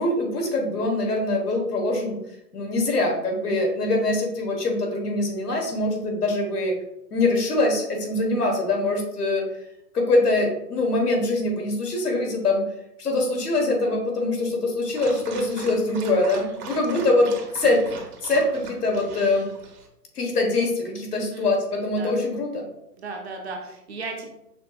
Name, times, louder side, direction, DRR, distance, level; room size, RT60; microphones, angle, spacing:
voice 1, 0.0-2.2 2.5-6.7 7.1-9.5 9.9-12.7 13.0-17.8 18.2-19.5 20.1-22.7, left 2 dB, 75° left, 1 dB, 1.5 m, -23 dB
Dog, 14.9-19.9, right 4 dB, 65° right, 1.0 m, -40 dB
voice 2, 15.4-15.8 16.5-17.2 21.1-21.5 21.9-22.2 23.0-24.4, right 3 dB, 40° right, 2 dB, 0.7 m, -37 dB
5.9 x 2.8 x 2.4 m, 0.83 s
hypercardioid pair, 150°, 48 cm